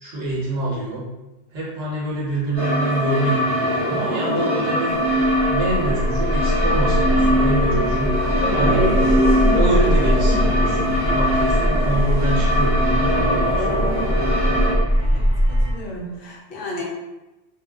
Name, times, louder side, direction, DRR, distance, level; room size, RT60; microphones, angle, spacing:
voice 1, 0.0-1.1 1.5-5.1 5.4-8.1 8.5-8.9 9.5-14.0 16.7-16.8, right 2 dB, 65° right, -5 dB, 1.0 m, -26 dB
sound 1, 2.6-14.7, equal, 35° left, 1.1 m, -21 dB
sound 2, 5.0-15.7, equal, 10° right, 0.6 m, -21 dB
voice 2, 15.0-16.8, left 1 dB, 60° left, -3 dB, 0.8 m, -34 dB
2.5 x 2.2 x 2.3 m, 1.0 s
omnidirectional pair, 1.2 m